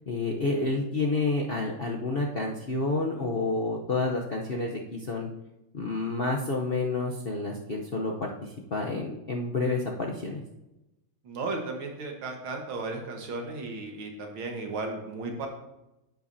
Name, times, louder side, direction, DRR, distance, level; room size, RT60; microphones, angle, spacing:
voice 1, 0.1-5.3 5.7-10.4, left 3 dB, 70° left, -1 dB, 0.5 m, -29 dB
voice 2, 11.2-15.5, right 3 dB, 90° right, 3 dB, 2.2 m, -35 dB
10.0 x 8.5 x 2.7 m, 0.93 s
omnidirectional pair, 2.2 m